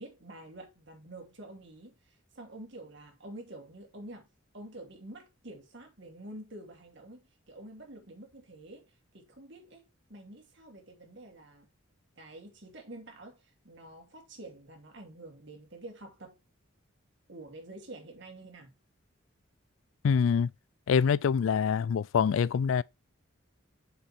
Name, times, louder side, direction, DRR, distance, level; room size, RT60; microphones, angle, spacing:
voice 1, 0.0-4.3 4.5-11.7 12.2-16.4 17.3-18.7, right 1 dB, 55° right, 2.9 m, -48 dB
voice 2, 20.0-20.5 20.9-22.8, left 6 dB, 75° left, 0.3 m, -25 dB
6.8 x 5.4 x 4.2 m
head